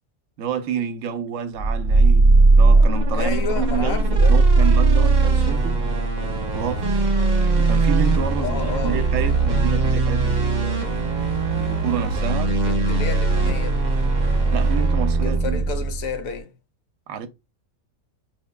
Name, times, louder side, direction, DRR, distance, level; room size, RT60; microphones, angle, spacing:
voice 1, 0.4-5.9 6.5-6.9 7.6-10.9 11.6-12.6 14.5-15.6 17.1-17.3, right 7 dB, 75° right, 0.9 m, -29 dB
sound 1, 1.6-16.2, right 3 dB, 35° right, 0.9 m, -19 dB
voice 2, 3.1-4.4 8.4-9.0 12.5-13.9 15.2-16.5, left 5 dB, 80° left, 1.1 m, -31 dB
4.2 x 3.0 x 2.2 m
omnidirectional pair, 1.4 m